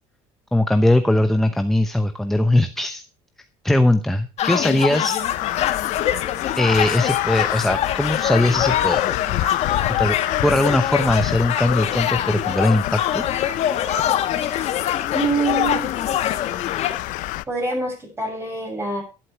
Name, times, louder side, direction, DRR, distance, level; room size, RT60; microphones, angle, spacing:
voice 1, 0.5-3.0 3.6-5.2 6.6-9.0 10.0-10.2 10.4-13.2, left 1 dB, ahead, 8 dB, 0.8 m, -20 dB
sound 1, 4.4-17.0, left 10 dB, 50° left, 1.8 m, -24 dB
Crow, 5.2-17.4, left 18 dB, 70° left, 0.6 m, -27 dB
Fowl, 7.8-15.2, right 4 dB, 35° right, 6.8 m, -45 dB
voice 2, 15.1-16.0 17.1-19.0, right 3 dB, 20° right, 2 dB, 6.8 m, -26 dB
12.0 x 11.0 x 4.5 m, 0.31 s
cardioid pair, 130°, 14 cm